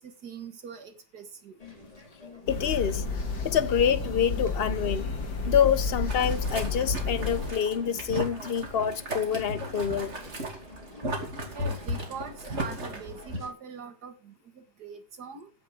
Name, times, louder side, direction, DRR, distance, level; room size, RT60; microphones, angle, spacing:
voice 1, 0.0-1.6 11.5-15.5, right 5 dB, 65° right, 2.4 m, -42 dB
sound 1, 1.6-13.5, left 2 dB, 20° left, 2.4 m, -49 dB
sound 2, 2.5-7.5, left 3 dB, 70° left, 2.6 m, -31 dB
voice 2, 2.5-3.0 3.4-5.1 5.5-10.1, left 8 dB, 50° left, 0.7 m, -26 dB
Boiling, 6.1-13.4, right 1 dB, 40° right, 3.0 m, -36 dB
16.0 x 6.2 x 5.2 m
omnidirectional pair, 1.9 m